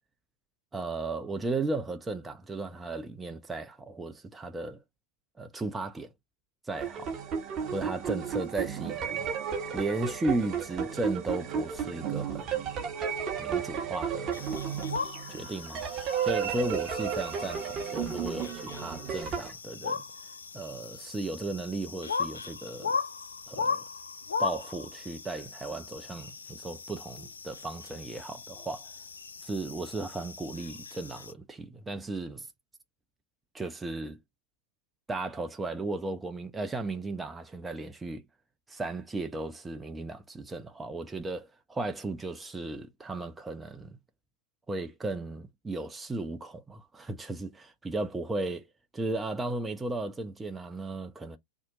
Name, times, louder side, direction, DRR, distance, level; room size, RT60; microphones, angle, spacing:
voice 1, 0.7-4.8 5.4-6.1 6.7-7.1 7.7-9.4 9.7-12.7 13.4-14.4 15.3-15.8 16.2-20.0 20.5-23.0 23.5-23.8 24.4-28.9 29.4-32.5 33.5-34.2 35.1-38.2 38.7-44.0 44.7-48.7 48.9-51.4, right 2 dB, 10° right, 0.5 m, -35 dB
sound 1, 6.7-19.5, right 7 dB, 30° right, 0.8 m, -33 dB
sound 2, 14.3-31.3, left 5 dB, 75° left, 0.4 m, -38 dB
2.7 x 2.0 x 3.7 m
figure-of-eight pair, 90°, 0 cm